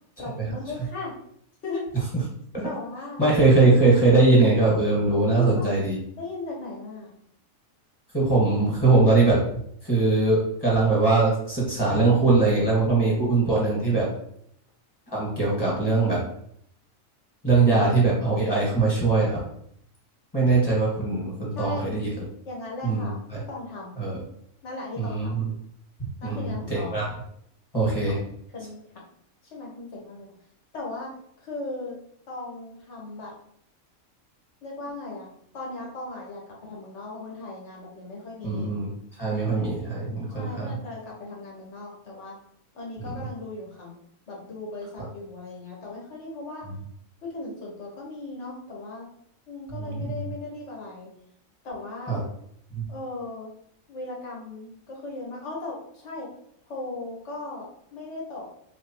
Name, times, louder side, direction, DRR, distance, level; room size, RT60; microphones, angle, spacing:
voice 1, 0.2-1.1 1.6-1.8 2.6-3.2 5.3-5.7 6.2-7.2 21.5-22.0 22.4-24.0 24.6-25.3 26.2-27.0 28.1-28.2 28.5-29.0 29.4-30.3 30.7-31.1 31.4-32.0 32.3-33.3 34.6-38.7 40.3-42.3 42.7-43.9 44.3-46.7 47.2-49.1 49.5-51.1 51.6-52.2 52.9-53.5 53.9-56.3 56.7-58.5, left 2 dB, 55° left, -3 dB, 1.4 m, -37 dB
voice 2, 3.2-6.0 8.1-9.4 9.8-14.1 15.1-16.2 17.4-19.4 20.3-22.2 22.8-23.4 24.0-24.2 25.0-25.4 26.2-27.0 27.7-28.2 38.4-38.9 39.2-40.8 43.0-43.1 49.7-50.2 52.1-52.2 52.7-52.8, right 3 dB, 20° left, -5 dB, 1.6 m, -21 dB
3.9 x 3.0 x 3.0 m, 0.70 s
omnidirectional pair, 1.4 m